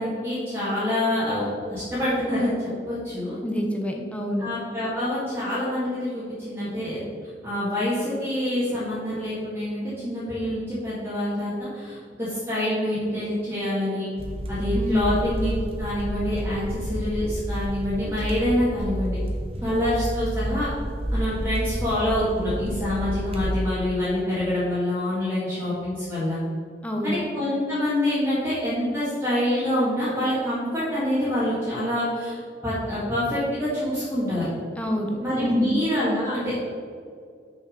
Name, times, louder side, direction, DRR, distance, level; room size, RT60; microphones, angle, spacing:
voice 1, 0.0-1.5 1.7-3.4 4.4-7.0 7.4-14.1 14.5-19.2 19.6-20.7 21.1-26.4 27.0-34.5 35.2-36.7, left 1 dB, 15° right, -10 dB, 1.8 m, -26 dB
voice 2, 3.4-4.5 14.7-15.2 19.6-19.7 26.8-27.2 34.8-35.8, equal, 5° left, 1 dB, 0.9 m, -27 dB
sound 1, 14.2-23.6, equal, 35° right, 1.0 m, -30 dB
6.3 x 6.1 x 5.1 m, 2.2 s
head